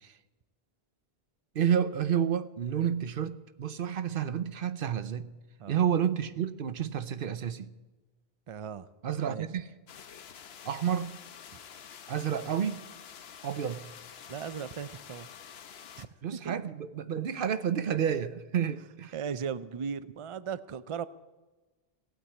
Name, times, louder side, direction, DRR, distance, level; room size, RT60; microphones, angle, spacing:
voice 1, 1.5-5.3 5.7-7.7 9.0-9.7 10.6-11.2 12.1-12.8 13.4-13.8 16.2-19.1, right 8 dB, 65° right, 13 dB, 0.9 m, -30 dB
voice 2, 8.5-8.9 9.3-9.5 14.3-15.3 16.0-16.6 19.1-21.1, right 7 dB, 45° right, 16 dB, 0.4 m, -37 dB
sound 1, 9.9-16.1, left 8 dB, 90° left, 1.0 m, -48 dB
16.5 x 9.0 x 8.3 m, 1.2 s
omnidirectional pair, 1.0 m